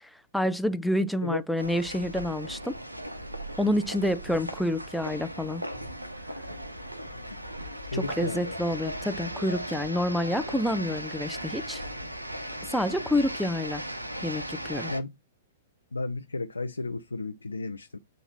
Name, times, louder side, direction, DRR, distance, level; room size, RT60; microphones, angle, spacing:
voice 1, 0.3-2.8 3.6-5.6 7.9-11.8 12.7-13.8 14.2-14.9, left 1 dB, ahead, 0.6 m, -28 dB
sound 1, 1.6-15.0, equal, 85° right, 1.1 m, -37 dB
voice 2, 7.9-8.6 14.9-15.1 15.9-18.0, left 3 dB, 75° left, 0.6 m, -33 dB
9.0 x 3.0 x 5.7 m
figure-of-eight pair, 105°, 0 cm